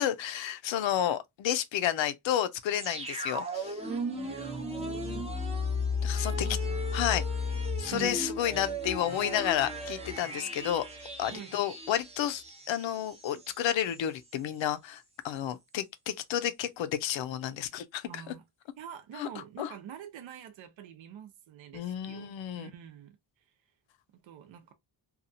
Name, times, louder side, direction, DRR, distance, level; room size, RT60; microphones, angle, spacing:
voice 1, 0.0-3.8 6.0-6.5 6.9-7.3 7.8-10.8 11.2-18.3 19.2-19.3 19.6-19.7 21.7-22.7, left 11 dB, 75° left, 0.6 m, -31 dB
sound 1, 2.8-13.6 13.9-14.0, left 2 dB, 15° right, 0.5 m, -35 dB
voice 2, 3.9-5.3 6.2-7.2 7.9-8.3 11.3-11.5 18.0-18.4 18.8-23.2 24.1-24.7, right 9 dB, 75° right, 0.7 m, -46 dB
2.8 x 2.3 x 2.5 m
wide cardioid pair, 170°, 46 cm